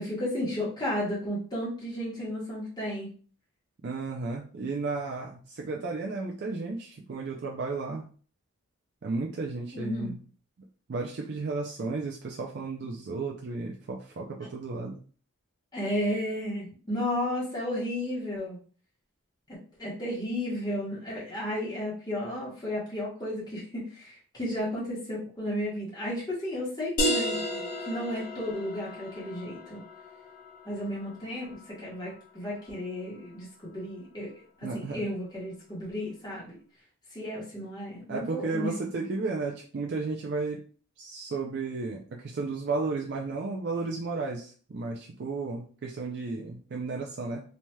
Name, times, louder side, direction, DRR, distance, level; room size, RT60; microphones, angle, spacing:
voice 1, 0.0-3.1 9.7-10.1 15.7-18.6 19.5-29.8 30.6-34.3 34.6-36.6 37.1-38.7, left 1 dB, 20° left, -7 dB, 1.1 m, -33 dB
voice 2, 3.8-8.1 9.0-10.2 10.9-15.0 34.6-35.0 38.1-40.6 41.0-47.4, right 3 dB, 50° right, -2 dB, 0.4 m, -33 dB
sound 1, 27.0-32.3, equal, 40° left, 0.6 m, -34 dB
3.1 x 2.8 x 2.2 m, 0.42 s
head